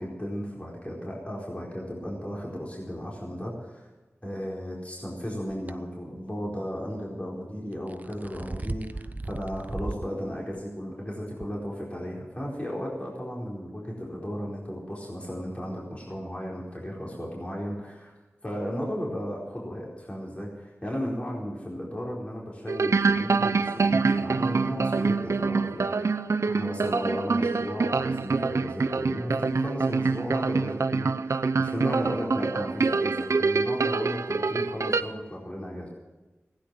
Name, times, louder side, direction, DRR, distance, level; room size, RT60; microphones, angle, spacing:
voice 1, 0.0-3.9 4.2-18.1 18.4-35.9, equal, 25° left, -4 dB, 4.4 m, -35 dB
sound 1, 5.5-5.7 7.7-10.1 10.5-10.6 11.4-11.5, right 2 dB, 35° right, 0.7 m, -36 dB
sound 2, 22.7-35.0, right 4 dB, 85° right, 0.6 m, -25 dB
16.5 x 10.0 x 7.6 m, 1.2 s
wide cardioid pair, 60°, 5 cm